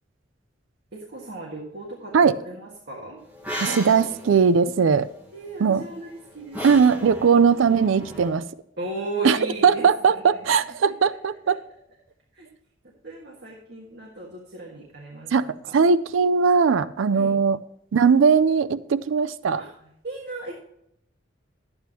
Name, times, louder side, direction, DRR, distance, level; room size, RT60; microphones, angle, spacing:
voice 1, 0.9-3.2 5.3-7.1 8.8-10.5 11.0-11.2 12.3-12.5 12.8-15.3 15.7-15.8 17.1-17.3 19.5-19.7 20.0-20.5, right 2 dB, 55° right, 1.6 m, -36 dB
sound 1, 3.2-8.3, equal, 10° right, 1.5 m, -37 dB
voice 2, 3.6-5.1 5.6-5.8 6.6-8.5 9.2-11.6 15.3-15.5 15.7-17.6 17.9-19.6, right 5 dB, 75° right, 0.4 m, -19 dB
11.5 x 8.7 x 2.9 m
head